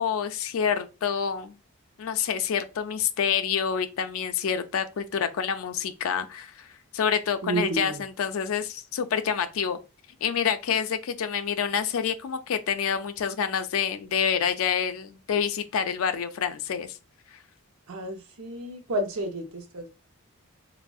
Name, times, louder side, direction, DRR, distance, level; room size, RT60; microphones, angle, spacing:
voice 1, 0.0-1.6 2.0-6.7 6.9-9.8 10.2-17.0, left 7 dB, 65° left, 0.4 m, -27 dB
voice 2, 7.4-8.0 17.9-19.9, right 2 dB, 70° right, 0.6 m, -31 dB
3.4 x 2.0 x 2.3 m
head